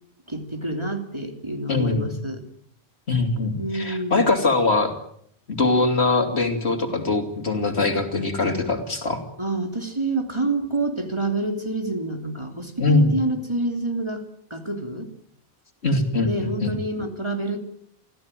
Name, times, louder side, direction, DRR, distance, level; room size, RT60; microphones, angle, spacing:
voice 1, 0.3-2.4 3.6-4.3 9.4-14.2 14.5-15.1 16.3-17.6, right 2 dB, 25° right, 4 dB, 3.1 m, -27 dB
voice 2, 1.7-2.1 3.1-4.9 5.5-9.2 12.8-13.1 15.8-16.7, left 3 dB, 75° left, 5 dB, 3.3 m, -22 dB
25.0 x 16.0 x 9.1 m, 0.69 s
omnidirectional pair, 1.1 m